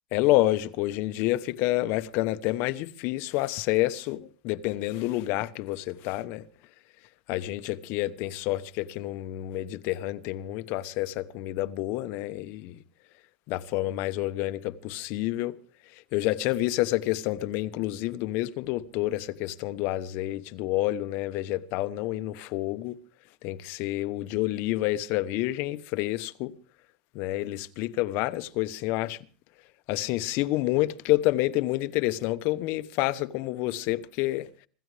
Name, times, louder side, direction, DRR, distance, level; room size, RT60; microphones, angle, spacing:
voice 1, 0.1-6.4 7.3-12.8 13.5-15.6 16.1-23.0 23.4-26.5 27.1-29.2 29.9-34.5, left 17 dB, 55° left, 1.0 m, -28 dB
26.0 x 14.0 x 3.4 m
supercardioid pair, 140°, 4 cm